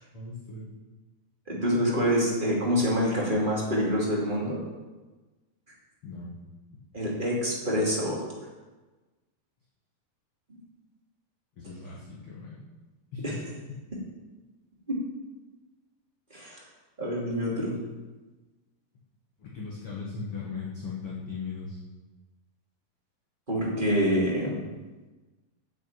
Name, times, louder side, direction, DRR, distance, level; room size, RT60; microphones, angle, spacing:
voice 1, 0.1-0.7 6.0-6.3 11.6-12.6 13.1-13.4 13.7-13.8 19.4-21.8, left 4 dB, 45° left, -5 dB, 2.2 m, -38 dB
voice 2, 1.5-4.6 6.9-8.2 13.2-13.3 14.9-15.0 16.3-16.6 17.0-17.8 23.5-24.6, equal, 15° right, -4 dB, 2.2 m, -26 dB
8.6 x 8.5 x 8.8 m, 1.2 s
omnidirectional pair, 4.6 m